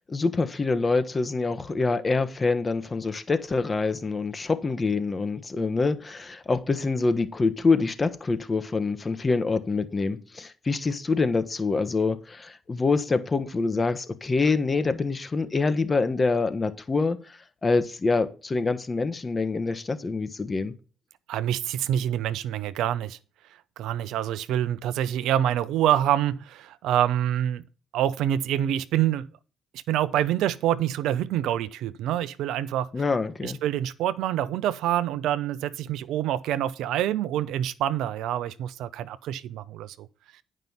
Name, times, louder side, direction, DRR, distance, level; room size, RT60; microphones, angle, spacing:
voice 1, 0.1-20.7 32.9-33.6, left 3 dB, 35° left, 1.3 m, -26 dB
voice 2, 21.3-23.2 23.8-27.6 27.9-29.3 29.9-32.9 33.4-40.1, right 11 dB, 75° right, 0.5 m, -26 dB
9.2 x 5.4 x 5.7 m
hypercardioid pair, 50°, 0 cm